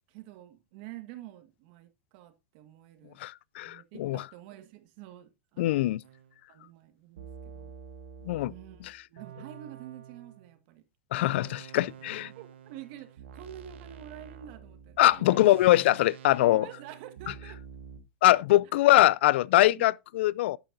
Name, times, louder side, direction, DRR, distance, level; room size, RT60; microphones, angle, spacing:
voice 1, 0.1-3.2 3.6-5.9 6.5-7.7 8.5-10.8 11.2-11.6 12.2-15.4 16.6-17.6 19.7-19.9, right 12 dB, 55° right, 1.9 m, -48 dB
voice 2, 3.2-4.2 5.6-6.0 8.2-8.5 11.1-12.3 15.0-16.7 18.2-20.6, left 15 dB, 65° left, 0.4 m, -23 dB
sound 1, 6.0-6.3 7.2-10.5 11.2-18.0, right 7 dB, 80° right, 1.9 m, -48 dB
11.5 x 8.8 x 2.7 m
hypercardioid pair, 125°, 7 cm